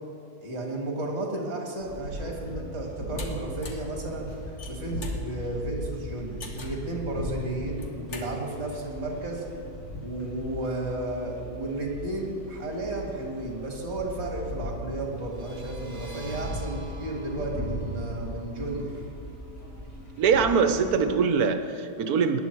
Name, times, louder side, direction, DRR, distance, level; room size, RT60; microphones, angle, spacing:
voice 1, 0.4-4.3 4.7-9.4 10.0-18.9, right 2 dB, 50° right, -1 dB, 2.4 m, -33 dB
sound 1, 1.8-21.1, equal, 70° left, 3.5 m, -38 dB
sound 2, 3.2-3.3 3.6-3.9 4.4-5.2 6.4-6.8 7.7-8.3, left 4 dB, 50° left, 1.6 m, -42 dB
sound 3, 15.2-20.6, right 3 dB, 30° right, 2.6 m, -51 dB
voice 2, 20.2-22.4, right 6 dB, 80° right, 9 dB, 1.3 m, -23 dB
18.0 x 10.5 x 4.6 m, 2.6 s
omnidirectional pair, 1.6 m